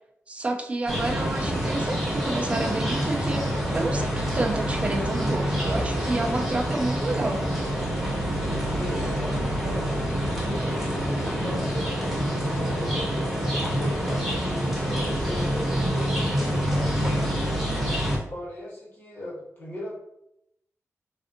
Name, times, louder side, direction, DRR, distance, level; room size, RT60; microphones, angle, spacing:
voice 1, 0.3-7.5, right 2 dB, 25° right, 4 dB, 0.3 m, -29 dB
sound 1, 0.9-18.2, equal, 5° right, 0.7 m, -26 dB
voice 2, 8.7-10.1 10.4-10.7 11.2-17.4 18.3-19.9, left 1 dB, 40° left, -6 dB, 1.3 m, -38 dB
3.4 x 2.6 x 2.5 m, 0.80 s
wide cardioid pair, 175°, 5 cm